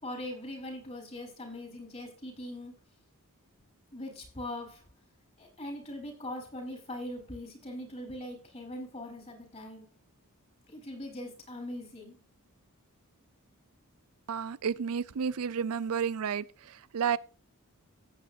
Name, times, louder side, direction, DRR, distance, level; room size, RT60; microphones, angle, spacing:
voice 1, 0.0-2.7 3.9-4.8 5.4-9.9 10.7-12.2, left 1 dB, 30° left, 4.4 m, -41 dB
voice 2, 14.3-17.2, right 7 dB, 70° right, 0.4 m, -31 dB
16.0 x 8.6 x 2.7 m
head